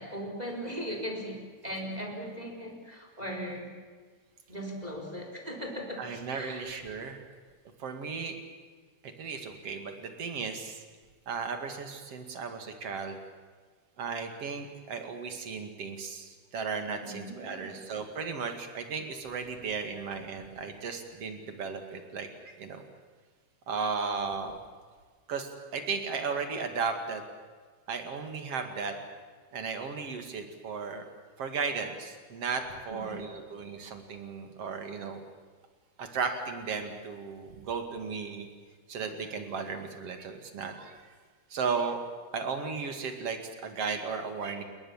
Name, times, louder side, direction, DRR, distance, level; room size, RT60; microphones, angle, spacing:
voice 1, 0.0-3.7 4.5-6.0 6.3-6.6 17.0-17.8 32.9-33.2, equal, 10° right, 2 dB, 3.8 m, -38 dB
voice 2, 6.0-7.2 7.8-8.3 9.2-10.8 11.3-13.2 14.0-22.8 23.7-24.5 25.3-27.2 27.9-29.0 29.5-31.0 31.4-35.2 36.0-38.5 38.9-40.9 41.5-42.0 42.3-44.6, right 5 dB, 40° right, 6 dB, 2.4 m, -35 dB
30.0 x 20.0 x 7.4 m, 1.5 s
omnidirectional pair, 5.5 m